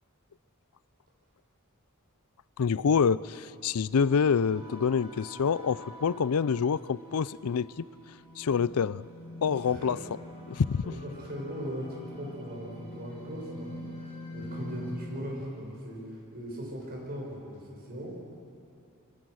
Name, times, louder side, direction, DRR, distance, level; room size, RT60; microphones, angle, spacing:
voice 1, 2.6-7.8 8.4-9.0 9.4-10.0 10.5-10.8, left 6 dB, 90° left, 19 dB, 0.5 m, -26 dB
sound 1, 4.0-14.9, equal, 25° right, 5.9 m, -45 dB
voice 2, 9.5-10.0 10.8-18.1, equal, 45° right, -2 dB, 6.3 m, -39 dB
27.0 x 24.0 x 6.4 m, 2.7 s
head